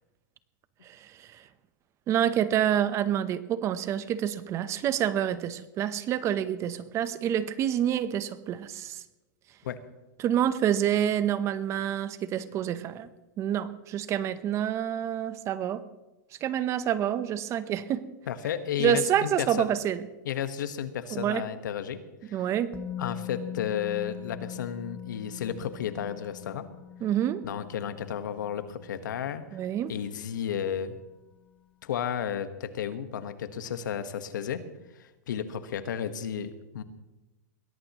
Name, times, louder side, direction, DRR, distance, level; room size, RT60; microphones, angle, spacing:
voice 1, 0.8-1.4 2.1-9.0 10.2-13.1 13.4-15.8 16.4-18.0 18.8-20.1 21.1-21.4 22.3-22.7 27.0-27.4 29.5-29.9, right 10 dB, 30° right, 14 dB, 0.9 m, -27 dB
voice 2, 18.3-19.7 20.2-22.4 23.0-26.7 27.4-29.4 29.9-31.0 31.8-34.6 35.0-36.8, left 8 dB, 80° left, 10 dB, 1.4 m, -33 dB
Musical instrument, 22.7-30.6 30.9-31.1, left 10 dB, 15° left, 1.2 m, -43 dB
22.0 x 17.5 x 3.1 m, 1.1 s
hypercardioid pair, 140°, 10 cm